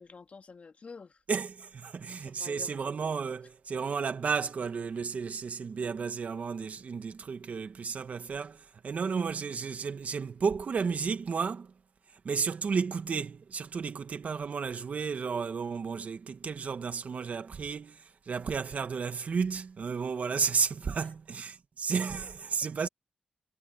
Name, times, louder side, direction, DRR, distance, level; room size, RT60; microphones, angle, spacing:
voice 1, 0.0-1.2 2.2-2.9 20.8-21.1, left 4 dB, 60° left, 2.1 m, -49 dB
voice 2, 1.3-11.7 12.2-22.9, right 5 dB, 70° right, 2.0 m, -33 dB
cardioid pair, 50°, 3 cm